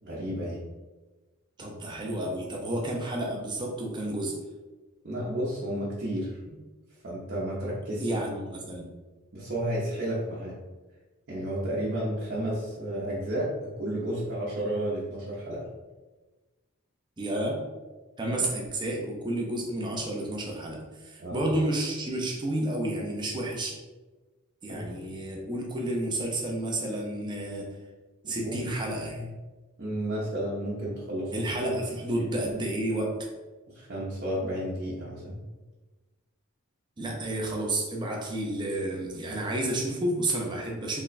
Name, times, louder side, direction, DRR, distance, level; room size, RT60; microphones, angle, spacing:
voice 1, 0.0-0.6 5.0-6.4 7.0-8.1 9.3-10.5 11.3-13.5 13.8-15.7 21.2-21.4 24.7-24.8 28.2-28.6 29.1-29.3 29.8-31.8 32.2-32.3 33.7-35.5, right 1 dB, 50° right, -8 dB, 0.8 m, -32 dB
voice 2, 1.6-4.4 8.0-8.9 17.2-17.6 18.2-23.8 24.6-27.7 28.3-29.2 31.3-33.3 37.0-41.0, right 1 dB, 20° right, -1 dB, 0.6 m, -31 dB
3.5 x 2.2 x 4.0 m, 1.2 s
head